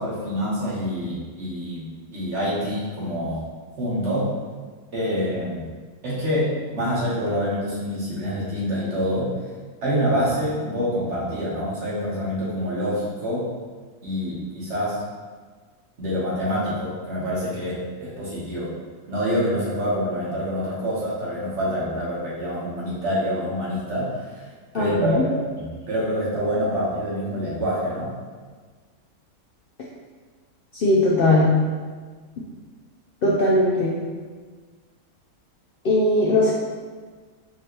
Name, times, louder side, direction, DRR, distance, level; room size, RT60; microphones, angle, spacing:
voice 1, 0.0-3.5 3.8-4.4 4.9-5.7 6.0-9.3 9.8-13.5 14.0-15.0 16.0-18.7 19.1-24.5 24.7-28.1, equal, 50° right, -7 dB, 1.5 m, -26 dB
voice 2, 24.7-25.2 30.7-31.5 33.2-34.0 35.8-36.5, left 1 dB, 70° left, -5 dB, 0.5 m, -19 dB
4.7 x 2.9 x 3.0 m, 1.5 s
omnidirectional pair, 1.5 m